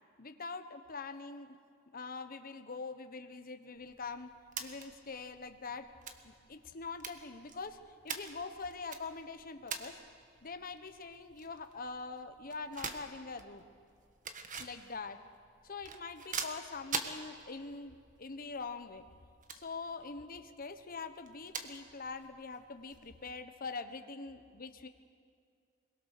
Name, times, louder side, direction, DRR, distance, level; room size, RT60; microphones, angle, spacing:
voice 1, 0.2-1.6 1.9-4.3 4.6-5.9 6.2-7.8 8.0-10.0 10.4-13.6 14.6-15.2 15.6-19.0 19.5-24.9, left 4 dB, 45° left, 8 dB, 1.2 m, -44 dB
sound 1, 3.8-23.3, right 5 dB, 40° right, 1.4 m, -46 dB
23.0 x 22.0 x 6.7 m, 2.3 s
head